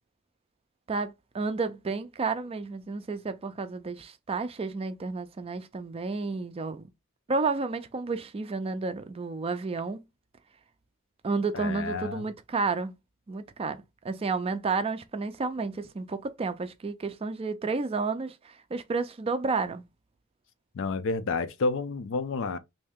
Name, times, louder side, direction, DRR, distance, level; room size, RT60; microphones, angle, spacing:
voice 1, 0.9-6.9 7.3-10.0 11.2-12.9 13.3-19.8, right 4 dB, 30° right, 0.4 m, -31 dB
voice 2, 11.5-12.2 20.7-22.6, left 3 dB, 65° left, 0.4 m, -30 dB
3.2 x 2.7 x 3.5 m
head